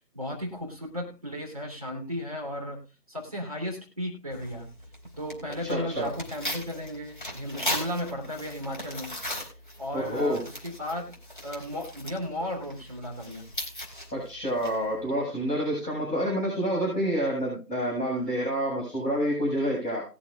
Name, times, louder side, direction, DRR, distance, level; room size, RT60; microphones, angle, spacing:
voice 1, 0.0-4.7 5.2-9.2 9.4-9.5 9.8-11.1 11.4-13.5, left 1 dB, ahead, -3 dB, 2.9 m, -35 dB
Tearing, 4.3-15.0, left 1 dB, 30° left, 4.0 m, -39 dB
voice 2, 5.6-6.1 9.9-10.4 14.1-20.0, equal, 80° left, -3 dB, 6.9 m, -28 dB
20.0 x 7.1 x 2.5 m, 0.33 s
figure-of-eight pair, 175°, 48 cm